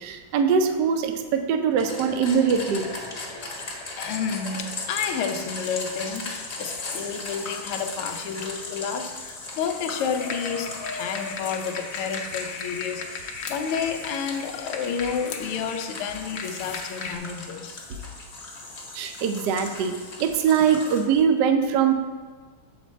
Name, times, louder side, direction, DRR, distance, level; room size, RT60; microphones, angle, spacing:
voice 1, 0.0-2.9 18.9-19.9 20.2-21.9, right 7 dB, 70° right, 7 dB, 1.0 m, -22 dB
sound 1, 1.8-21.0, left 3 dB, 45° left, 1.0 m, -38 dB
voice 2, 4.0-17.8, left 6 dB, 90° left, 5 dB, 1.6 m, -30 dB
sound 2, 10.2-17.2, left 5 dB, 70° left, 1.3 m, -36 dB
7.3 x 5.2 x 4.2 m, 1.4 s
omnidirectional pair, 2.4 m